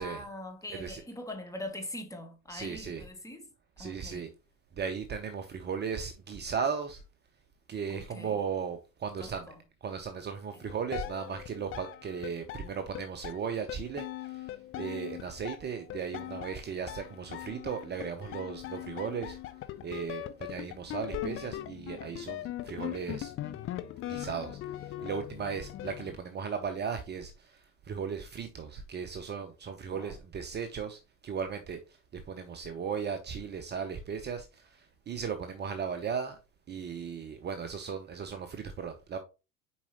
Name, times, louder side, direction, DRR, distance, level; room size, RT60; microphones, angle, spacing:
voice 1, 0.0-3.4 3.8-4.3 7.9-8.4 9.2-9.6 29.9-30.1, left 1 dB, 10° left, 1.5 m, -42 dB
voice 2, 0.7-1.0 2.5-3.0 3.8-4.3 4.8-7.0 7.7-9.5 9.8-14.1 14.8-19.4 19.8-23.3 24.1-24.6 25.0-27.3 27.9-31.0 31.2-31.8 32.3-34.5 35.1-36.4 36.7-39.2, right 6 dB, 25° right, 0.8 m, -36 dB
sound 1, 10.6-26.2, left 13 dB, 30° left, 0.7 m, -41 dB
7.0 x 4.8 x 2.9 m
figure-of-eight pair, 70°, 40 cm